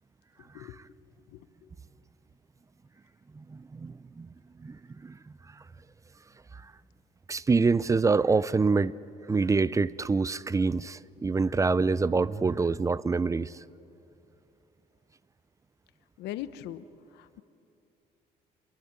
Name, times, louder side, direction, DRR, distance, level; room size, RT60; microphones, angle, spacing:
voice 1, 3.4-4.3 4.6-5.2 7.3-8.9 9.3-13.6, right 4 dB, 20° right, 0.5 m, -26 dB
voice 2, 16.2-16.8 17.1-17.4, left 13 dB, 85° left, 1.1 m, -39 dB
27.0 x 22.5 x 8.7 m
cardioid pair, 110°, 17 cm